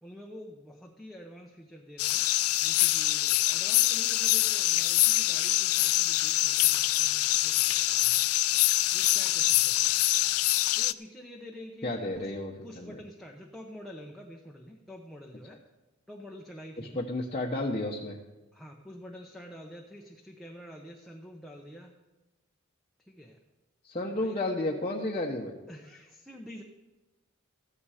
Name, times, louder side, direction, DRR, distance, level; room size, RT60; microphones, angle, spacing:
voice 1, 0.0-8.2 8.9-10.3 10.8-12.3 12.6-15.6 16.1-17.1 18.5-21.9 23.0-23.4 24.1-24.4 25.7-26.6, equal, ahead, -1 dB, 0.9 m, -47 dB
sound 1, 2.0-10.9, left 17 dB, 85° left, 0.4 m, -25 dB
voice 2, 11.8-13.0 16.8-18.2 23.8-25.6, left 2 dB, 30° left, -3 dB, 1.0 m, -32 dB
14.5 x 10.5 x 5.0 m, 1.1 s
head